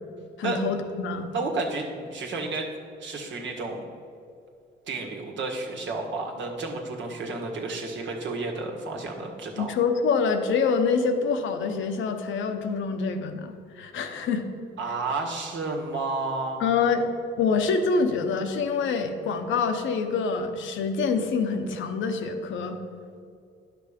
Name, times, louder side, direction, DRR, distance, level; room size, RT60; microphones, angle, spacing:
voice 1, 0.4-1.3 9.6-14.4 16.6-17.1 17.4-22.8, left 5 dB, 75° left, 6 dB, 0.9 m, -26 dB
voice 2, 1.3-2.7 3.0-3.8 4.9-9.6 14.8-16.6, right 3 dB, 70° right, 0 dB, 1.7 m, -31 dB
10.0 x 6.0 x 5.1 m, 2.3 s
cardioid pair, 90°, 20 cm